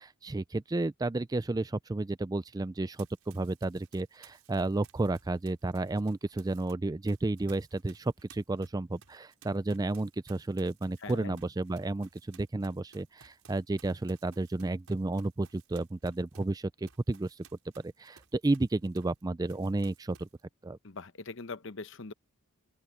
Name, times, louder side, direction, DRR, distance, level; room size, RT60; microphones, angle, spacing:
voice 1, 0.0-17.4 17.8-20.3 20.6-20.8, right 2 dB, 15° right, 0.3 m, -32 dB
Run, 2.9-6.7 7.1-19.2 19.5-20.4, right 7 dB, 70° right, 5.7 m, -59 dB
voice 2, 11.0-11.4 20.8-22.1, left 3 dB, 60° left, 0.9 m, -42 dB
open air
head